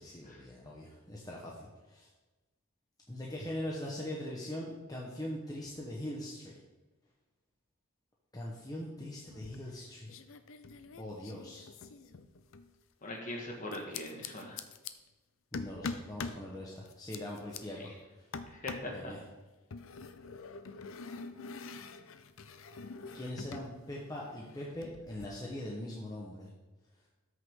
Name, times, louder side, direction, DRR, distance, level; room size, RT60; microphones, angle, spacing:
voice 1, 0.0-2.1 3.1-6.5 8.3-10.1 11.0-11.7 15.5-17.9 18.2-18.3 18.9-19.2 23.1-26.5, left 1 dB, 15° left, -3 dB, 1.1 m, -41 dB
sound 1, 9.3-9.8 10.1-12.7 13.7-14.9 15.5-16.4 16.9-17.6 18.3-19.0 19.7-23.7 24.0-25.3, left 4 dB, 70° left, 0.6 m, -44 dB
voice 2, 13.0-14.6 17.8-17.9 18.5-19.2, left 1 dB, 35° left, 0 dB, 1.7 m, -41 dB
13.5 x 6.4 x 3.8 m, 1.1 s
head